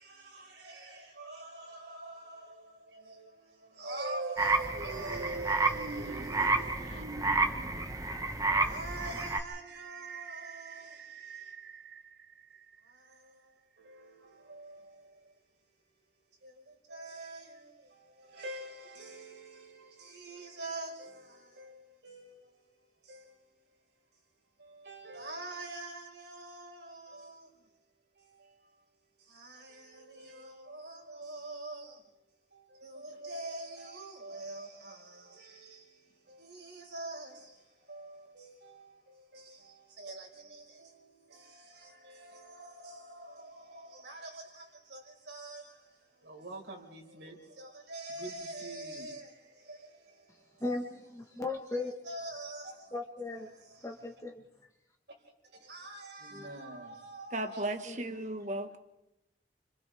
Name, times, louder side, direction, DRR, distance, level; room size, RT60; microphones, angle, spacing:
voice 1, 1.2-2.1 3.8-4.5 4.8-5.2 5.6-5.7 8.5-10.7 16.9-17.4 18.4-19.2 20.3-20.9 22.0-22.3 24.9-27.0 30.7-31.8 32.8-32.9 33.2-34.9 36.6-37.3 37.9-38.1 38.4-38.5 40.0-40.3 42.2-43.3 44.0-44.3 44.9-45.0 45.3-45.6 46.3-47.3 47.9-49.2 52.1-52.7 55.7-57.7, right 2 dB, 85° right, 4.9 m, -43 dB
sound 1, 3.8-12.8, right 3 dB, 70° right, 1.0 m, -42 dB
sound 2, 4.4-9.4, right 3 dB, 20° right, 1.2 m, -30 dB
voice 2, 50.6-51.9 52.9-53.5 53.8-54.4 56.3-56.5 57.8-58.0, left 2 dB, 20° left, 1.4 m, -37 dB
voice 3, 57.3-58.8, right 1 dB, 45° right, 1.5 m, -35 dB
29.5 x 25.5 x 3.5 m
head